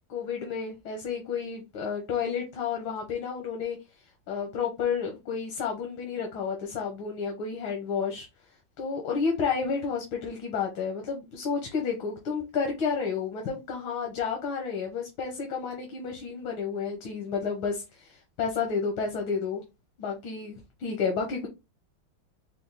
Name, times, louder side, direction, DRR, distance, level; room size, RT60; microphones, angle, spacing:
voice 1, 0.1-3.8 4.3-8.3 8.8-19.6 20.0-21.5, left 5 dB, 90° left, 1.9 m, -31 dB
5.2 x 2.0 x 3.9 m
omnidirectional pair, 2.2 m